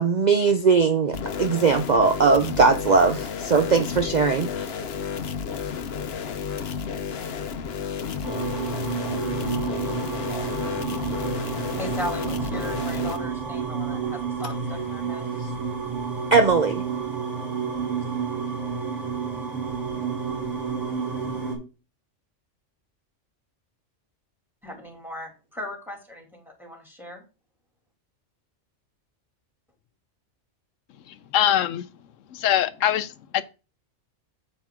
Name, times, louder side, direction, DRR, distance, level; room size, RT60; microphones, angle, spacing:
voice 1, 0.0-4.7 16.3-16.8, right 4 dB, 45° right, 0.6 m, -20 dB
sound 1, 1.1-13.2, left 6 dB, 60° left, 1.0 m, -32 dB
sound 2, 8.2-21.6, right 5 dB, 80° right, 5.3 m, -30 dB
voice 2, 11.7-15.3 24.6-27.2, equal, ahead, 2.5 m, -37 dB
voice 3, 31.1-31.8 32.3-33.4, left 11 dB, 90° left, 1.0 m, -23 dB
9.0 x 7.6 x 3.6 m
omnidirectional pair, 1.3 m